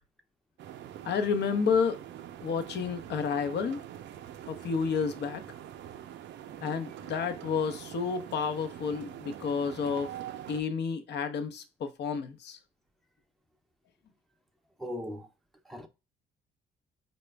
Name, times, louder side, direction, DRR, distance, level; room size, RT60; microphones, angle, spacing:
sound 1, 0.6-10.6, right 11 dB, 65° right, 0.5 m, -44 dB
voice 1, 1.0-2.0 2.4-3.8 4.5-5.4 6.6-10.1 10.5-12.6, left 5 dB, 60° left, 0.7 m, -30 dB
voice 2, 14.8-15.3 15.7-15.9, left 1 dB, ahead, 0.5 m, -38 dB
4.0 x 2.1 x 3.3 m
supercardioid pair, 65°, 20 cm